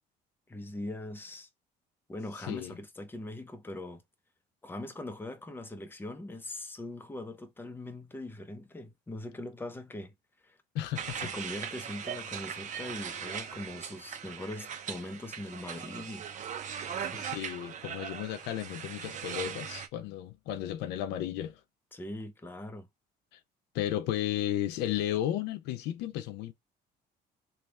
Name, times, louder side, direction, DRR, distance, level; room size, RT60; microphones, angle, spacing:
voice 1, 0.5-1.5 2.1-4.0 4.6-10.1 10.4-10.6 11.2-16.3 17.0-17.3 21.9-22.9, left 1 dB, 10° left, 0.7 m, -41 dB
voice 2, 10.7-11.3 17.2-21.6 23.3-23.4 23.7-26.5, left 12 dB, 90° left, 0.5 m, -34 dB
sound 1, 11.0-19.9, right 8 dB, 45° right, 0.7 m, -39 dB
3.2 x 2.3 x 4.1 m
cardioid pair, 110°, 17 cm